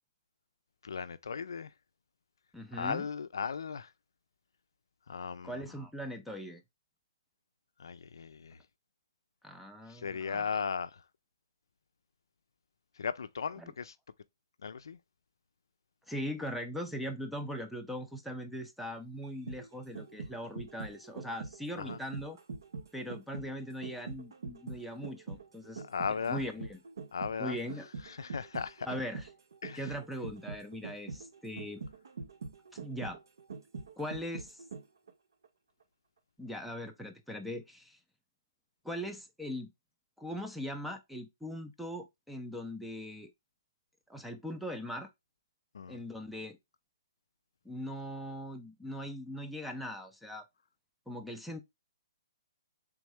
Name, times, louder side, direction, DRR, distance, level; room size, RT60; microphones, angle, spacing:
voice 1, 0.8-1.7 2.8-3.9 5.1-5.6 7.8-8.6 9.9-10.9 13.0-13.9 14.6-15.0 21.8-22.0 25.8-26.4 27.1-27.6 28.2-28.9 29.6-29.8 45.7-46.0, left 6 dB, 80° left, 0.4 m, -36 dB
voice 2, 2.5-3.1 5.4-6.6 9.4-10.5 13.6-13.7 16.1-22.4 22.9-25.8 26.3-26.8 27.4-27.9 28.8-29.3 29.8-31.8 32.8-33.2 34.0-34.6 36.4-38.0 38.8-39.7 40.2-43.3 44.1-45.1 45.9-46.6 47.6-50.4 51.1-51.6, equal, ahead, 0.4 m, -40 dB
sound 1, 19.2-35.1 35.4-35.5, right 4 dB, 70° right, 0.7 m, -44 dB
3.5 x 3.1 x 3.3 m
hypercardioid pair, 160°, 2 cm